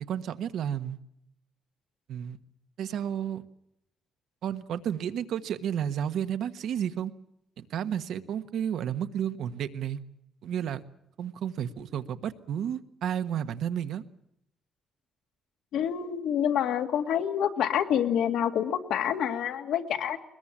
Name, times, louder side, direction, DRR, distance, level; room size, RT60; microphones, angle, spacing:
voice 1, 0.1-1.0 2.1-2.4 2.8-3.4 4.4-7.1 7.6-10.0 10.4-10.8 11.2-14.0, right 9 dB, 70° right, 10 dB, 1.3 m, -32 dB
voice 2, 15.7-20.2, left 9 dB, 80° left, 7 dB, 2.2 m, -27 dB
21.5 x 21.5 x 7.4 m, 0.80 s
cardioid pair, 160°, 0 cm